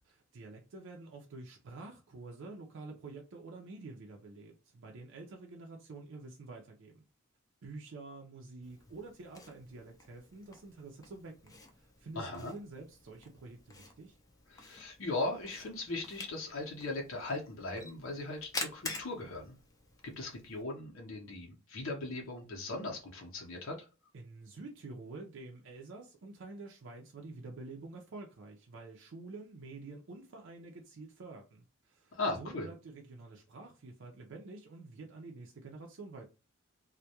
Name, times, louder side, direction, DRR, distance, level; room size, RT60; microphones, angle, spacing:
voice 1, 0.0-7.0 7.6-14.2 24.1-36.3, right 3 dB, 70° right, 0.5 m, -48 dB
Camera, 8.6-20.6, left 3 dB, 20° left, 0.4 m, -48 dB
voice 2, 12.1-12.5 14.5-19.5 20.0-23.7 32.1-32.7, left 2 dB, 80° left, 0.7 m, -38 dB
2.2 x 2.1 x 2.8 m
head